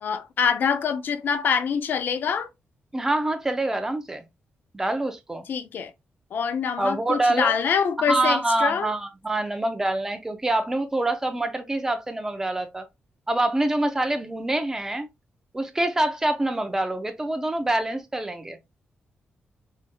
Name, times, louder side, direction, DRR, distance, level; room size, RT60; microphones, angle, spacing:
voice 1, 0.0-2.5 5.5-5.9 6.3-8.9, left 7 dB, 55° left, 0.5 m, -25 dB
voice 2, 2.9-4.2 4.7-5.4 6.8-7.5 8.1-12.8 13.3-15.1 15.5-18.6, right 2 dB, 15° right, 0.5 m, -25 dB
5.0 x 2.6 x 2.2 m
wide cardioid pair, 170°, 4 cm